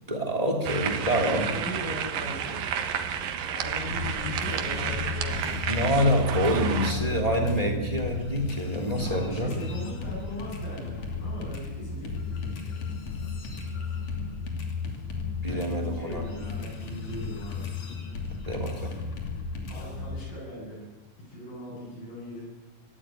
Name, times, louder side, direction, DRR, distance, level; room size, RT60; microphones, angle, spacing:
voice 1, 0.1-1.5 5.7-9.5 15.4-16.3 18.4-19.0, equal, 10° right, 4 dB, 2.8 m, -26 dB
sound 1, 0.6-6.9, right 8 dB, 80° right, 3.1 m, -31 dB
voice 2, 1.4-5.8 6.7-7.2 8.9-12.8 14.0-14.1 15.4-17.7 19.7-20.9 21.2-22.4, left 1 dB, 75° left, -4 dB, 9.8 m, -40 dB
sound 2, 3.9-20.2, left 4 dB, 50° left, 3.8 m, -34 dB
24.5 x 15.0 x 9.2 m, 1.3 s
omnidirectional pair, 4.0 m